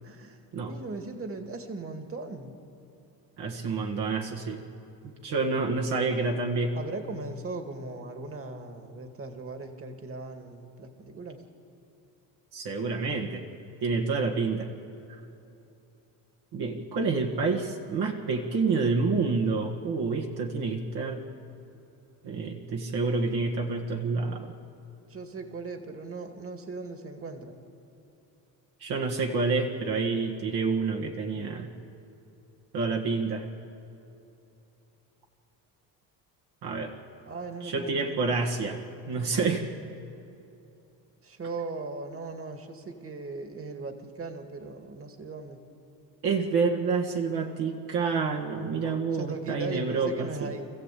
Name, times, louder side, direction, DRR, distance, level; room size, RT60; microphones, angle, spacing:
voice 1, 0.0-0.4 0.7-2.5 6.7-11.4 25.1-27.5 37.2-38.4 41.2-45.6 49.1-50.7, right 3 dB, 30° right, 6 dB, 2.1 m, -38 dB
voice 2, 3.4-4.6 5.0-6.8 12.5-13.5 13.8-14.7 16.5-21.2 22.2-24.5 28.8-31.7 32.7-33.5 36.6-36.9 37.6-38.8 39.1-39.6 46.2-50.5, right 4 dB, 65° right, 1 dB, 2.0 m, -28 dB
24.5 x 14.5 x 8.4 m, 2.9 s
cardioid pair, 85°, 42 cm